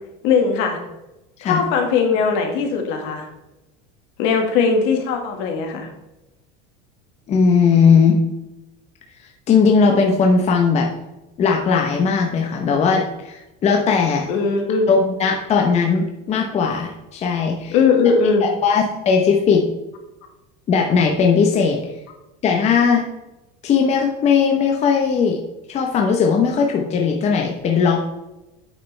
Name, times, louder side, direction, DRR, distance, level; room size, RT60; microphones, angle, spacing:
voice 1, 0.2-0.8 1.4-3.3 4.2-5.9 14.3-14.9 17.7-18.5, left 5 dB, 65° left, 3 dB, 1.9 m, -19 dB
voice 2, 7.3-8.2 9.5-10.9 11.4-14.3 14.9-17.7 18.4-19.6 20.7-21.8 22.4-23.0 23.6-25.4 25.7-28.0, left 5 dB, 30° left, 1 dB, 0.9 m, -18 dB
8.9 x 6.6 x 3.4 m, 0.96 s
cardioid pair, 145°, 21 cm